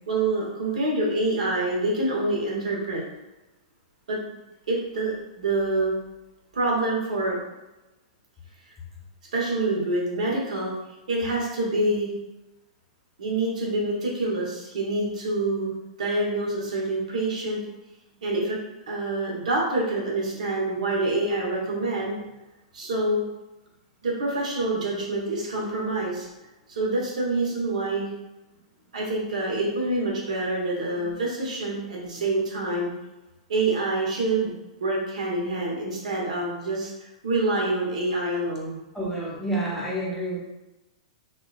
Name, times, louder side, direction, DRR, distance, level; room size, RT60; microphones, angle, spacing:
voice 1, 0.1-3.0 4.1-4.2 4.7-5.9 6.5-7.4 9.3-10.7 11.1-12.1 13.2-15.7 16.0-17.6 18.2-18.6 18.9-22.2 22.7-23.2 24.0-26.3 26.7-28.1 28.9-32.9 33.5-34.5 34.8-36.9 37.2-38.8, right 2 dB, 85° right, -3 dB, 0.9 m, -26 dB
voice 2, 38.9-40.4, right 1 dB, 5° left, -5 dB, 0.7 m, -29 dB
2.8 x 2.2 x 2.3 m, 1.0 s
hypercardioid pair, 140°, 4 cm